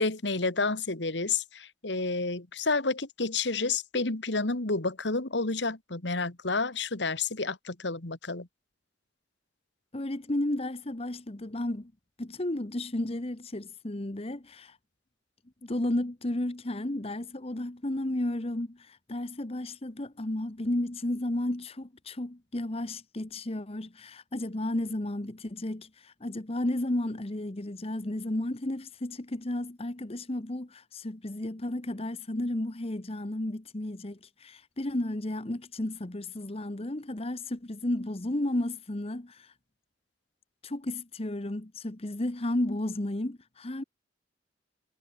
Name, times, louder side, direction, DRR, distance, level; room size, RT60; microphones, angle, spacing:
voice 1, 0.0-8.5, left 3 dB, 70° left, 2.1 m, -30 dB
voice 2, 9.9-11.9 12.2-14.8 15.6-39.5 40.6-43.8, left 1 dB, 35° left, 1.2 m, -33 dB
head